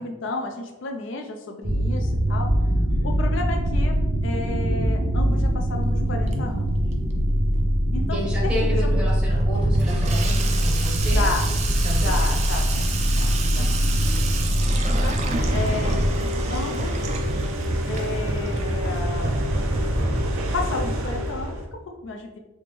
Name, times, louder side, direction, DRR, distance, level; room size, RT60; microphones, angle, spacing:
voice 1, 0.0-2.5 3.0-4.0 4.2-6.7 7.9-8.9 11.0-11.5 12.0-13.7 14.8-16.0 16.5-17.1 17.9-19.3 20.5-22.4, left 3 dB, 60° left, 3 dB, 0.4 m, -32 dB
sound 1, 1.6-16.1, equal, 60° right, 0.8 m, -22 dB
voice 2, 2.4-3.3 8.1-11.3 11.8-12.2, equal, 5° right, -5 dB, 0.7 m, -31 dB
Water tap faucet / Sink (filling or washing), 5.3-21.3, right 3 dB, 35° right, 0.3 m, -31 dB
sound 2, 15.3-21.7, equal, 85° right, 0.6 m, -27 dB
3.5 x 2.9 x 3.0 m, 1.1 s
head